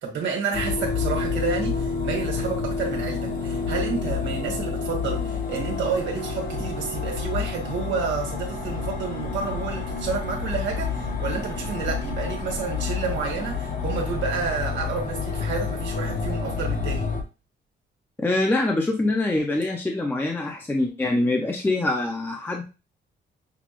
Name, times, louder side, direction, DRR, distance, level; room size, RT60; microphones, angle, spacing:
voice 1, 0.0-17.1, right 5 dB, 75° right, 1.7 m, -30 dB
sound 1, 0.5-17.2, left 5 dB, 45° left, 0.9 m, -29 dB
voice 2, 18.2-22.6, left 2 dB, 10° left, 0.5 m, -24 dB
6.0 x 2.3 x 3.0 m
cardioid pair, 150°, 20 cm